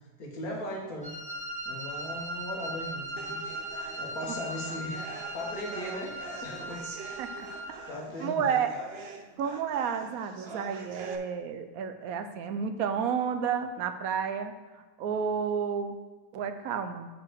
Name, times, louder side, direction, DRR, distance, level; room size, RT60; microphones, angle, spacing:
voice 1, 0.2-1.1 1.7-3.5 4.0-7.3 7.9-8.6, left 1 dB, 75° left, -2 dB, 1.9 m, -38 dB
Wind instrument woodwind instrument, 1.0-7.8, right 1 dB, 5° left, 1.3 m, -38 dB
sound 1, 3.2-11.2, right 5 dB, 55° right, 0.7 m, -45 dB
voice 2, 8.2-8.7 9.4-14.5 15.0-16.0 16.3-17.1, right 7 dB, 75° right, 8 dB, 1.0 m, -31 dB
5.8 x 4.8 x 6.6 m, 1.3 s
omnidirectional pair, 1.6 m